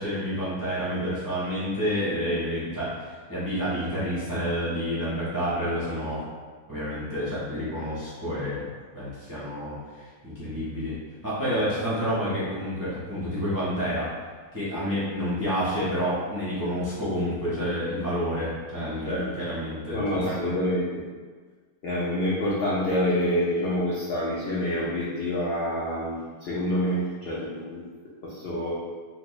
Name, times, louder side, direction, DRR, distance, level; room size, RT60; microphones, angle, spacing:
voice 1, 0.0-6.2 6.7-8.7 8.9-11.0 11.2-14.1 14.5-20.5, equal, 25° right, -10 dB, 0.4 m, -29 dB
voice 2, 19.9-20.8 21.8-27.8 28.2-28.7, left 1 dB, 80° left, -7 dB, 0.5 m, -27 dB
4.3 x 2.0 x 3.0 m, 1.5 s
omnidirectional pair, 1.8 m